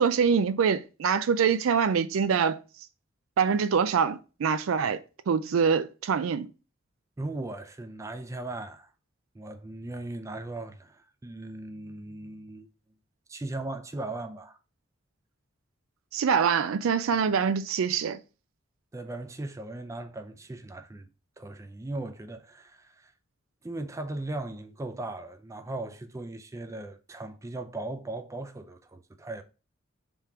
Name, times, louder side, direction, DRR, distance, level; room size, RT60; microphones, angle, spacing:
voice 1, 0.0-2.6 3.4-5.0 5.3-6.5 16.1-18.2, right 6 dB, 80° right, 0.4 m, -24 dB
voice 2, 7.2-8.9 9.3-12.7 13.3-14.6 18.9-21.1 21.4-23.1 23.6-29.4, right 2 dB, 15° right, 0.3 m, -38 dB
3.6 x 2.9 x 4.7 m
head